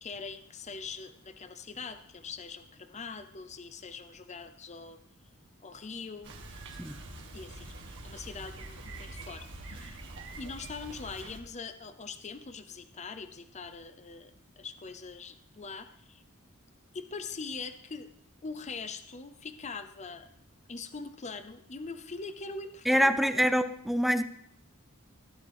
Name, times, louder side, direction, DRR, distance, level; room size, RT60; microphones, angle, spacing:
voice 1, 0.0-5.0 5.6-6.3 7.3-10.0 10.4-14.3 14.6-16.2 16.9-18.1 18.4-20.3 20.7-23.1, left 4 dB, 35° left, 10 dB, 0.7 m, -42 dB
Bicycle, 6.2-11.4, right 2 dB, 60° right, 1.9 m, -45 dB
voice 2, 22.9-24.2, equal, ahead, 11 dB, 0.5 m, -25 dB
17.5 x 12.0 x 3.5 m, 0.69 s
head